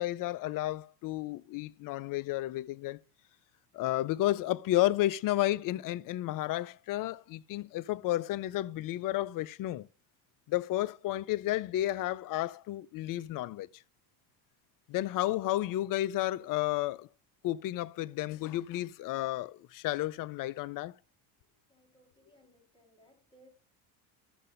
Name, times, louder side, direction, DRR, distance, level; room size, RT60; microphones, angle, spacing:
voice 1, 0.0-3.0 3.7-9.9 10.5-13.7 14.9-17.1 17.4-20.9, left 15 dB, 45° left, 0.4 m, -32 dB
voice 2, 21.7-23.5, equal, 10° left, 3.5 m, -63 dB
12.5 x 6.5 x 2.5 m
supercardioid pair, 80°, 49 cm